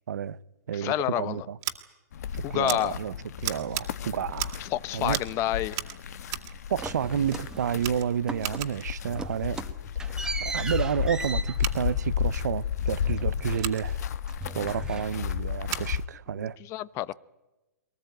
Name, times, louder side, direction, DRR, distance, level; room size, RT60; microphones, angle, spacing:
voice 1, 0.1-0.4 0.7-1.6 2.5-4.6 4.9-5.2 6.7-9.6 10.4-14.0 14.5-16.6, right 8 dB, 80° right, 0.8 m, -30 dB
voice 2, 0.7-1.5 2.4-3.0 4.6-5.8 16.3-17.1, left 14 dB, 30° left, 0.8 m, -29 dB
Scissors, 1.6-1.8 2.7-2.8 3.4-3.9 4.3-4.7 5.1-5.3 5.7-6.5 7.3-7.4 7.8-8.9 11.5-11.8 13.6-13.8 15.7-15.9, right 14 dB, 35° right, 2.3 m, -35 dB
sound 1, 2.1-16.1, left 8 dB, 70° left, 1.2 m, -33 dB
sound 2, 6.8-8.0 8.3-8.8 9.0-14.0 14.3-15.6, right 3 dB, 5° right, 1.5 m, -38 dB
23.0 x 19.5 x 9.1 m
hypercardioid pair, 135°, 9 cm